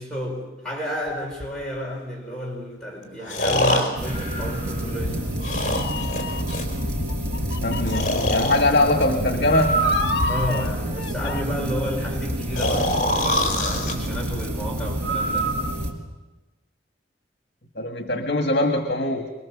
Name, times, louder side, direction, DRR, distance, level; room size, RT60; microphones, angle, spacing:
voice 1, 0.0-5.2 10.3-15.5, equal, 5° left, -3 dB, 4.4 m, -31 dB
Breathing, 1.4-1.5 3.3-5.0 5.4-6.7 7.9-8.6 9.4-10.6 12.6-13.9 15.0-15.5, equal, 45° left, 4.0 m, -24 dB
sound 1, 4.0-15.9, right 1 dB, 55° right, 4.5 m, -29 dB
Meow, 4.7-11.4, left 2 dB, 85° left, 0.8 m, -32 dB
voice 2, 7.6-9.8 17.7-19.3, left 1 dB, 70° left, 5 dB, 1.7 m, -22 dB
25.0 x 22.0 x 7.4 m, 1.2 s
head